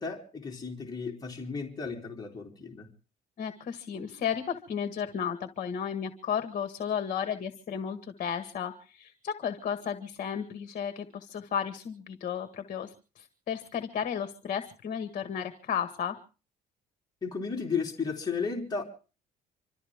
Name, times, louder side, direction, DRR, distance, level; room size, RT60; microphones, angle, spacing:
voice 1, 0.0-2.9 17.2-18.8, left 5 dB, 25° left, 3.3 m, -34 dB
voice 2, 3.4-16.1, left 8 dB, 50° left, 1.7 m, -33 dB
26.5 x 13.5 x 3.6 m
cardioid pair, 110°, 17 cm